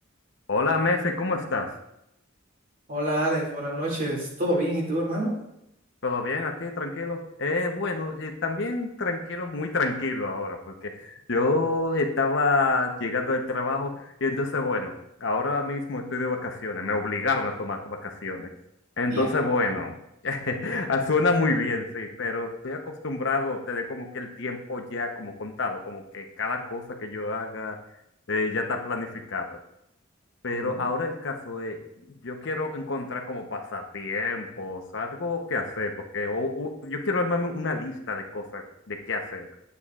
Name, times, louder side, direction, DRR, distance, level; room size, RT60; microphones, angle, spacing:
voice 1, 0.5-1.8 6.0-14.9 15.2-18.5 19.0-20.0 20.2-27.8 28.3-29.6 30.4-31.8 32.1-39.5, left 3 dB, 65° left, 3 dB, 0.9 m, -28 dB
voice 2, 2.9-5.4 19.1-19.3 30.5-30.8, right 1 dB, 45° right, -3 dB, 2.4 m, -27 dB
9.6 x 8.3 x 2.4 m, 0.81 s
head